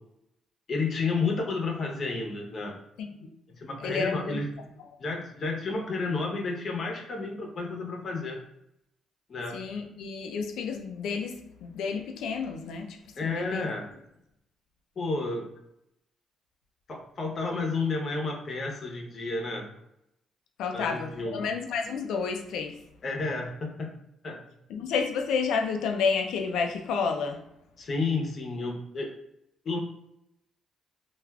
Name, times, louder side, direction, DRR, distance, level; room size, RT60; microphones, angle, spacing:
voice 1, 0.7-2.8 3.5-4.5 5.0-8.4 9.3-9.6 13.2-13.9 15.0-15.5 16.9-19.7 20.7-21.5 23.0-23.9 24.2-24.4 27.8-29.1 29.6-29.8, left 3 dB, 50° left, 0 dB, 0.8 m, -31 dB
voice 2, 3.8-4.4 9.5-13.7 20.6-22.8 24.7-27.4, left 5 dB, 85° left, 4 dB, 0.4 m, -30 dB
3.3 x 2.4 x 2.3 m, 0.83 s
cardioid pair, 90°, 0 cm